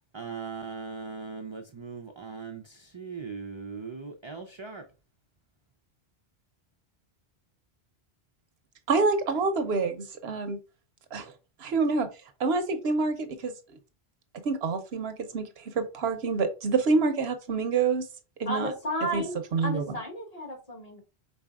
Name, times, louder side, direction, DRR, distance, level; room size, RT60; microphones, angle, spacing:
voice 1, 0.1-4.8, right 4 dB, 40° right, 4 dB, 0.4 m, -39 dB
voice 2, 8.9-10.6 11.1-11.3 11.6-12.1 12.4-13.8 14.4-18.1 18.4-18.7 19.1-19.2 19.5-19.8, right 4 dB, 75° right, 8 dB, 1.0 m, -27 dB
voice 3, 18.4-19.4 19.6-21.0, equal, 35° left, 1 dB, 1.6 m, -33 dB
5.3 x 3.9 x 2.4 m, 0.32 s
omnidirectional pair, 1.1 m